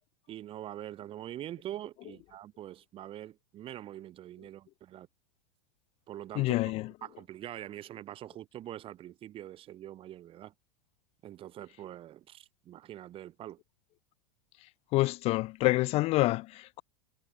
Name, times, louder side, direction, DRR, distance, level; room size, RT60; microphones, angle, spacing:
voice 1, 0.3-5.1 6.1-6.7 7.0-10.5 11.2-13.6, right 12 dB, 30° right, 1.2 m, -44 dB
voice 2, 6.4-6.9 14.9-16.8, left 19 dB, 35° left, 0.5 m, -27 dB
figure-of-eight pair, 90°, 17 cm